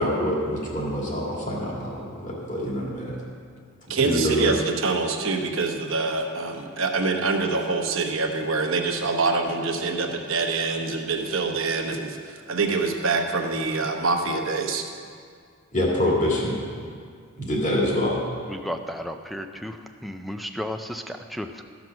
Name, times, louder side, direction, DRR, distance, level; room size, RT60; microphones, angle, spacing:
voice 1, 0.0-3.2 4.0-4.5 15.7-16.6 17.4-18.2, left 1 dB, 35° left, -3 dB, 2.2 m, -25 dB
voice 2, 3.9-14.8, right 3 dB, 60° right, 3 dB, 1.0 m, -25 dB
voice 3, 18.5-19.8 20.0-21.6, equal, ahead, 5 dB, 0.4 m, -33 dB
14.0 x 6.1 x 6.0 m, 2.2 s
head